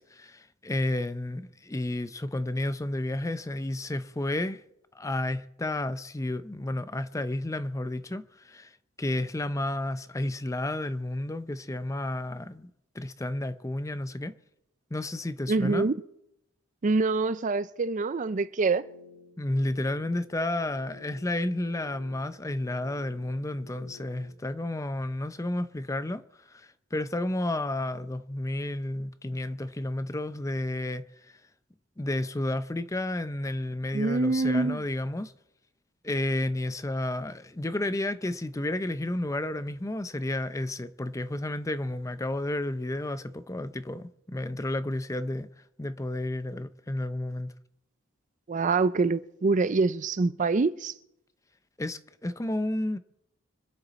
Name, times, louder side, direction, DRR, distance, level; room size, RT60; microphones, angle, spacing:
voice 1, 0.0-4.6 4.9-8.7 9.0-12.7 12.9-14.3 14.9-15.9 19.4-31.4 32.0-35.3 36.0-45.5 45.8-47.5 51.8-53.0, left 1 dB, 15° left, 0.5 m, -31 dB
voice 2, 15.5-15.9 16.8-18.8 33.9-34.8 48.5-50.9, right 3 dB, 40° right, 0.4 m, -25 dB
sound 1, 18.7-24.3, left 5 dB, 35° left, 2.4 m, -53 dB
26.0 x 9.9 x 4.1 m
head